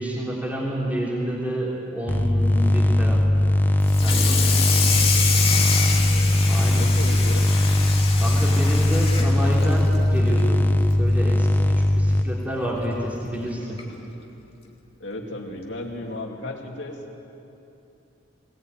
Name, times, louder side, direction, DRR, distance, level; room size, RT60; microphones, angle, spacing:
voice 1, 0.0-3.2 4.0-4.4 6.5-6.9 8.2-10.6 11.0-13.8, equal, 10° right, -6 dB, 3.4 m, -29 dB
sound 1, 2.1-12.2, left 1 dB, 10° left, 0.9 m, -20 dB
Water tap faucet / Sink (filling or washing), 3.8-10.5 10.9-11.1 11.5-11.6 12.0-12.1 13.2-13.3 13.8-14.0, left 5 dB, 30° left, 2.3 m, -27 dB
voice 2, 4.9-7.4 15.0-17.0, left 1 dB, 70° left, 2 dB, 2.7 m, -36 dB
sound 2, 4.9-11.5, left 2 dB, 90° right, 5.1 m, -40 dB
20.5 x 19.5 x 9.1 m, 2.9 s
head